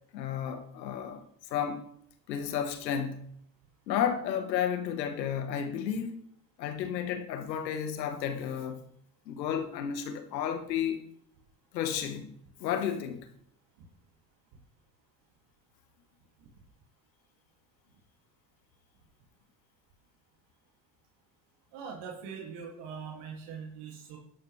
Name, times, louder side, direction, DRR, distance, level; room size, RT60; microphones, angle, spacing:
voice 1, 0.1-1.2 1.5-1.8 2.3-3.4 3.9-6.2 6.6-8.9 9.3-11.0 11.7-12.3 12.6-13.3, left 8 dB, 90° left, 1.3 m, -32 dB
voice 2, 21.7-24.2, right 6 dB, 75° right, 2.5 m, -42 dB
13.5 x 11.0 x 3.3 m
hypercardioid pair, 60°, 50 cm